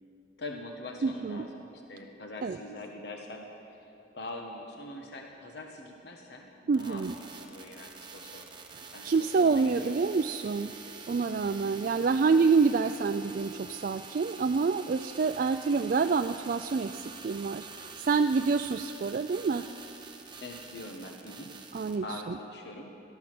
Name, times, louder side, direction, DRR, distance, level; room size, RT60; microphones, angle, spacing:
voice 1, 0.4-6.5 6.7-8.6 8.9-10.0 11.6-11.9 15.7-16.1 20.4-21.5 22.0-22.9, left 2 dB, 65° left, 2 dB, 1.2 m, -43 dB
voice 2, 1.0-1.4 2.4-2.6 6.7-7.1 9.0-10.7 11.1-19.6 21.7-22.0, right 4 dB, 50° right, 8 dB, 0.3 m, -27 dB
sound 1, 6.7-22.0, right 4 dB, 25° right, 0.9 m, -47 dB
18.0 x 13.0 x 6.0 m, 2.9 s
head